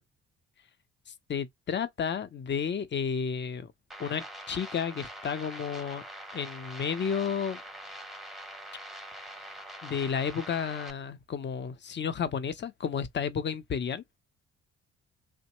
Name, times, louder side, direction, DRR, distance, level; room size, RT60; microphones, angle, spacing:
voice 1, 1.3-3.7 4.0-6.0 6.3-7.6 9.4-9.5 9.8-14.0, left 7 dB, 35° left, 0.6 m, -32 dB
sound 1, 3.9-10.9, equal, ahead, 0.7 m, -44 dB
3.1 x 2.1 x 2.9 m
cardioid pair, 90°, 30 cm